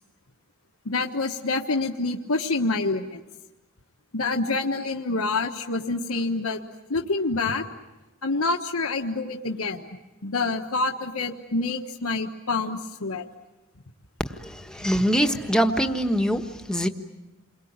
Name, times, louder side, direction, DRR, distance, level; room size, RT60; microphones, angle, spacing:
voice 1, 0.8-3.2 4.1-6.6 6.9-7.6 8.2-9.9 10.2-13.2 14.8-15.0, left 3 dB, 85° left, 3 dB, 1.3 m, -27 dB
voice 2, 14.7-16.9, equal, 5° left, 5 dB, 1.4 m, -23 dB
29.0 x 22.5 x 8.8 m, 1.1 s
head